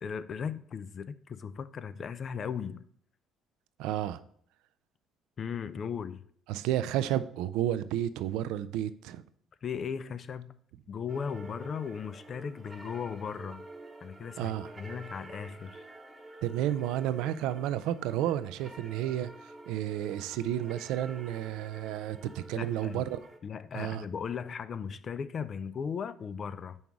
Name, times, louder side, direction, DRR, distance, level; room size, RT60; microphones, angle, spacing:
voice 1, 0.0-2.9 5.4-6.2 9.6-10.6 10.9-13.7 14.0-15.8 22.5-23.0 23.4-26.8, left 6 dB, 50° left, 0.4 m, -37 dB
voice 2, 3.8-4.2 6.5-9.2 14.4-14.7 16.4-19.3 19.7-23.2 23.7-24.0, right 12 dB, 75° right, 0.3 m, -31 dB
sound 1, 11.1-23.4, right 2 dB, 20° right, 0.9 m, -49 dB
5.4 x 4.6 x 4.7 m
hypercardioid pair, 60°, 0 cm